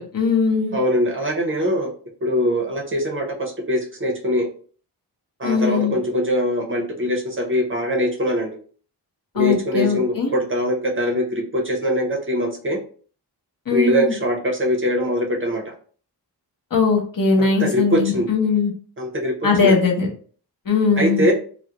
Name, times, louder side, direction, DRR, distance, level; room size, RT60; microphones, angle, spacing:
voice 1, 0.0-0.7 5.4-5.9 9.3-10.3 13.7-14.1 16.7-18.7 19.4-20.1 20.7-21.3, left 4 dB, 55° left, 0 dB, 0.8 m, -20 dB
voice 2, 0.7-1.9 2.2-4.5 5.4-8.6 9.3-12.8 13.7-15.7 17.4-18.3 19.0-19.8 21.0-21.3, equal, 30° right, 0 dB, 0.5 m, -22 dB
2.4 x 2.0 x 2.8 m, 0.43 s
wide cardioid pair, 130°, 41 cm